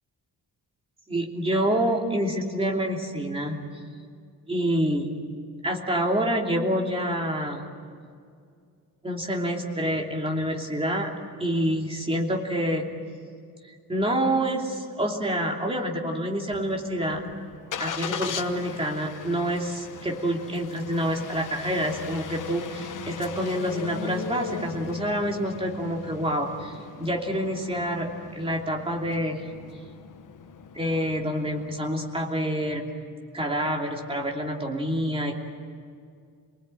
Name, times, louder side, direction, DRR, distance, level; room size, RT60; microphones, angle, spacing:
voice 1, 1.1-3.6 4.5-5.1 5.6-7.6 9.0-11.1 11.4-12.8 13.7-17.2 17.8-28.1 28.3-29.5 30.7-32.9 33.3-35.4, equal, 15° right, 0 dB, 2.9 m, -27 dB
Engine starting, 16.5-31.8, left 7 dB, 55° left, 1.1 m, -39 dB
27.5 x 20.0 x 9.0 m, 2.2 s
wide cardioid pair, 180°, 37 cm